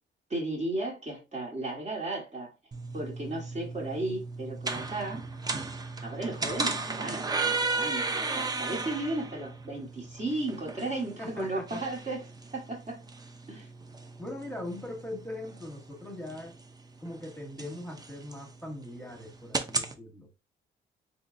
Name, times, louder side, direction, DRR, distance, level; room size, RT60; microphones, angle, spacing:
voice 1, 0.3-2.5 2.9-5.3 6.0-12.3 12.5-13.0 13.5-13.7, right 2 dB, 35° right, 1.3 m, -35 dB
sound 1, 2.7-19.9, right 3 dB, 20° right, 0.5 m, -36 dB
voice 2, 11.2-11.8 14.2-16.5 17.0-20.3, left 1 dB, 10° left, 1.2 m, -40 dB
3.8 x 3.0 x 2.6 m
cardioid pair, 90°, 20 cm